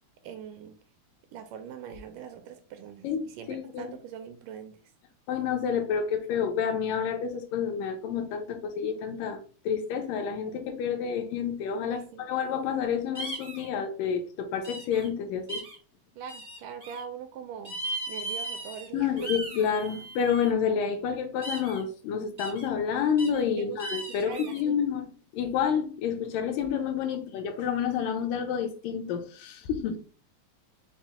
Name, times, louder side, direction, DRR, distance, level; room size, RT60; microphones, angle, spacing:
voice 1, 0.2-0.8 1.3-4.8 11.9-12.2 16.2-17.8 18.1-19.3 23.6-23.8 24.2-24.8, right 8 dB, 80° right, 7 dB, 2.0 m, -42 dB
voice 2, 3.0-3.9 5.3-9.4 9.7-15.6 18.9-30.0, left 7 dB, 80° left, 5 dB, 2.2 m, -29 dB
sound 1, 13.1-13.7 14.6-15.1 15.5-15.8 16.3-17.0 17.6-18.9 19.2-20.5 21.4-21.8 22.4-22.7 23.2-23.4 23.8-24.6, right 2 dB, 40° right, 0.5 m, -37 dB
6.0 x 2.0 x 4.1 m, 0.39 s
omnidirectional pair, 4.0 m